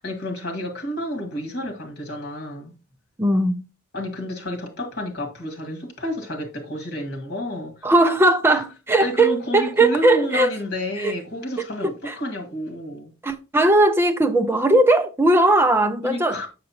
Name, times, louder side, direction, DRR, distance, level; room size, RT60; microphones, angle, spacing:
voice 1, 0.0-2.7 3.9-7.9 8.5-8.6 9.0-13.1 16.0-16.5, equal, 50° left, 1.9 m, -30 dB
voice 2, 3.2-3.6 7.8-10.5 11.0-11.1 12.1-12.2 13.2-16.4, right 2 dB, 10° right, 0.5 m, -18 dB
6.8 x 6.4 x 2.9 m
head